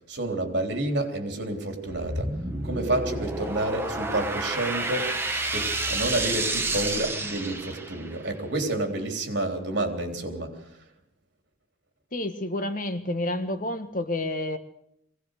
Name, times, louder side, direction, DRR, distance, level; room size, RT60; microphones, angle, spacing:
voice 1, 0.1-2.3 2.6-5.1 5.5-10.6, right 1 dB, 60° right, 3.6 m, -29 dB
sound 1, 1.9-8.2, right 2 dB, 10° right, 1.6 m, -30 dB
voice 2, 12.1-14.6, left 1 dB, 45° left, 1.4 m, -29 dB
22.5 x 17.5 x 6.6 m
head